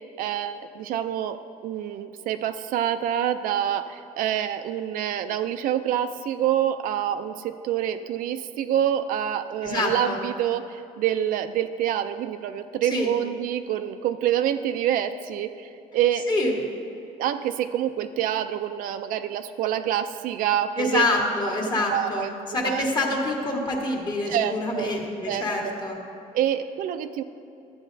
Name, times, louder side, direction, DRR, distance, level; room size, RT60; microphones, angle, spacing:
voice 1, 0.2-16.3 17.2-21.0 21.9-22.8 24.3-24.9 25.3-25.8 26.3-27.2, right 10 dB, 70° right, 9 dB, 0.4 m, -27 dB
voice 2, 9.6-10.2 12.8-13.1 16.3-16.5 20.8-26.0, left 2 dB, 30° left, 0 dB, 1.4 m, -26 dB
12.5 x 8.3 x 2.6 m, 2.7 s
cardioid pair, 120°, 15 cm